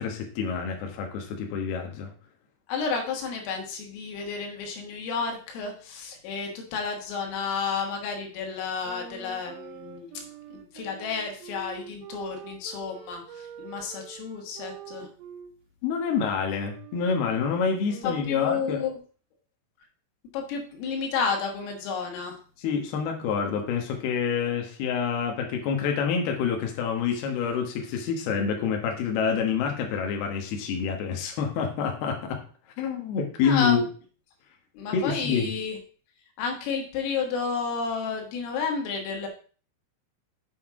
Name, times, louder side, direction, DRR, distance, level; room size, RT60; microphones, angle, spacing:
voice 1, 0.0-2.1 15.8-18.8 22.6-32.4 32.8-33.9 34.9-35.5, left 6 dB, 65° left, 2 dB, 2.9 m, -27 dB
voice 2, 2.7-10.2 10.5-15.1 18.0-19.0 20.3-22.4 33.4-33.8 34.8-35.8 36.4-39.3, left 5 dB, 90° left, 2 dB, 4.2 m, -31 dB
sound 1, 8.8-15.5 16.0-19.0, right 8 dB, 75° right, 2.7 m, -45 dB
7.9 x 7.1 x 3.7 m, 0.41 s
omnidirectional pair, 5.7 m